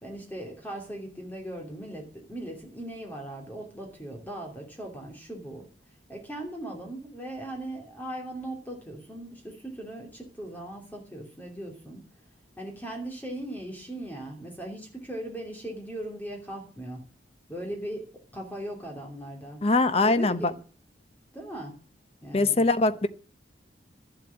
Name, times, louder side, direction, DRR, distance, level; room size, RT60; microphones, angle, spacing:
voice 1, 0.0-5.7 6.1-12.0 12.6-17.0 17.5-19.6 20.0-20.6 21.3-21.7 22.2-22.6, right 1 dB, 10° left, 3.0 m, -39 dB
voice 2, 19.6-20.5 22.3-23.1, left 2 dB, 30° left, 0.7 m, -22 dB
13.0 x 7.7 x 8.6 m
head